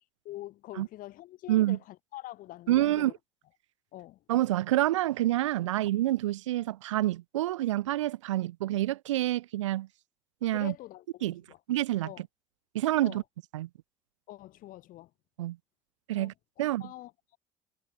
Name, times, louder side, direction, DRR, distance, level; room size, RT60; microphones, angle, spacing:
voice 1, 0.2-3.1 3.9-4.2 5.7-5.8 10.5-11.6 12.0-12.2 13.0-13.2 14.3-15.1 16.1-16.3 16.8-17.4, left 15 dB, 65° left, 1.8 m, -45 dB
voice 2, 2.7-3.1 4.3-9.9 10.4-10.7 11.2-11.4 11.7-12.1 12.7-13.2 13.5-13.7 15.4-15.6 16.1-16.3 16.6-16.8, right 15 dB, 90° right, 0.5 m, -27 dB
hypercardioid pair, 60°, 15 cm